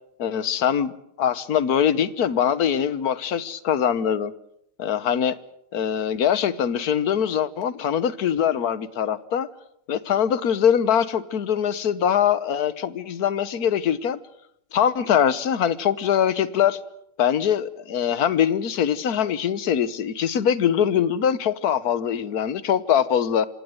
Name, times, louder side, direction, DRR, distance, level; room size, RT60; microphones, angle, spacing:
voice 1, 0.2-0.9 1.2-4.3 4.8-5.4 5.7-9.5 9.9-14.2 14.7-16.8 17.2-23.5, left 8 dB, 70° left, 16 dB, 1.6 m, -22 dB
25.5 x 18.0 x 7.9 m, 0.76 s
omnidirectional pair, 1.7 m